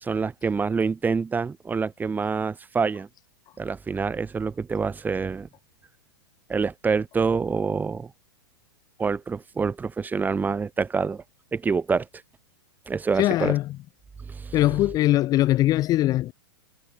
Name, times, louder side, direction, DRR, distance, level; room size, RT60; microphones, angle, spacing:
voice 1, 0.0-3.1 3.6-5.5 6.5-8.1 9.0-11.2 11.5-12.1 12.9-13.6 14.3-14.6, right 5 dB, 15° right, 2.2 m, -26 dB
voice 2, 13.2-13.6 14.5-16.3, left 15 dB, 30° left, 0.6 m, -21 dB
figure-of-eight pair, 105°, 13 cm